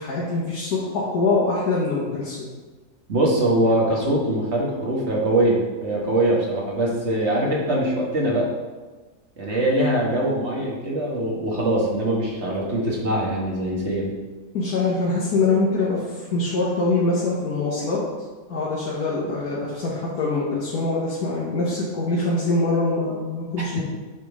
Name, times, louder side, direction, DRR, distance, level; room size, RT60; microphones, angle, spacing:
voice 1, 0.0-2.4 14.5-18.0 18.5-23.8, left 3 dB, 70° left, -6 dB, 1.7 m, -24 dB
voice 2, 3.1-8.5 9.4-14.1, right 1 dB, 45° right, -3 dB, 1.6 m, -22 dB
8.3 x 3.7 x 4.8 m, 1.3 s
omnidirectional pair, 1.7 m